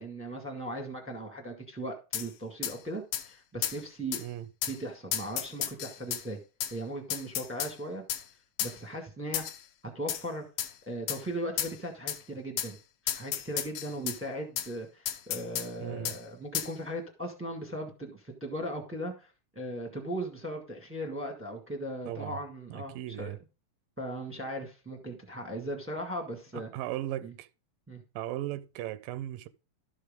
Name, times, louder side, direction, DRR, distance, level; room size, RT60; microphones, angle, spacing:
voice 1, 0.0-4.2 4.7-6.4 6.7-8.0 8.6-9.5 9.9-10.4 10.9-12.8 13.1-23.3 24.0-26.7 27.2-27.3 27.9-28.0, right 1 dB, 15° right, 0.4 m, -38 dB
sound 1, 2.1-2.3 2.6-2.8 3.1-3.3 3.6-3.8 4.1-4.2 4.6-4.8 5.1-6.2 6.6-6.7 7.1-7.7 8.1-8.2 8.6-8.8 9.3-9.6 10.1-10.2 10.6-10.7 11.1-11.2 11.6-11.7 12.1-12.2 12.6-12.7 13.1-14.2 14.6-14.7 15.1-15.7 16.1-16.2 16.5-16.7, left 11 dB, 75° left, 2.4 m, -33 dB
voice 2, 15.8-16.2 22.1-22.4 22.7-23.4 26.7-27.5 28.2-29.5, right 14 dB, 90° right, 2.4 m, -37 dB
12.5 x 6.4 x 3.6 m
omnidirectional pair, 3.9 m